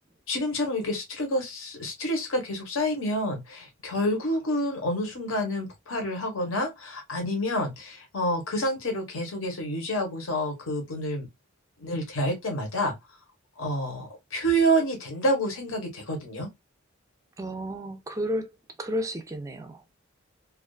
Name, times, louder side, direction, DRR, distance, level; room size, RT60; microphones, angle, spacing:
voice 1, 0.3-11.3 11.8-13.0 13.6-16.5, equal, 70° left, 1.0 m, -28 dB
voice 2, 17.4-18.5 18.8-20.0, equal, 15° right, 0.4 m, -32 dB
2.4 x 2.3 x 2.2 m
head